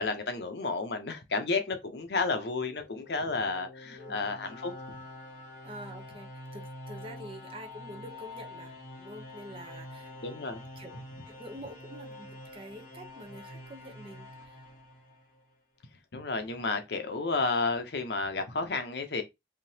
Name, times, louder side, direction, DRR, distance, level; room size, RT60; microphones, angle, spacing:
voice 1, 0.0-4.7 10.2-10.6 16.1-19.2, left 3 dB, 75° left, 0.7 m, -31 dB
sound 1, 2.5-15.5, left 1 dB, 45° left, 1.2 m, -46 dB
voice 2, 3.8-4.2 5.6-10.1 10.8-11.0 11.3-14.6, equal, 30° right, 0.7 m, -47 dB
3.6 x 2.8 x 2.8 m
head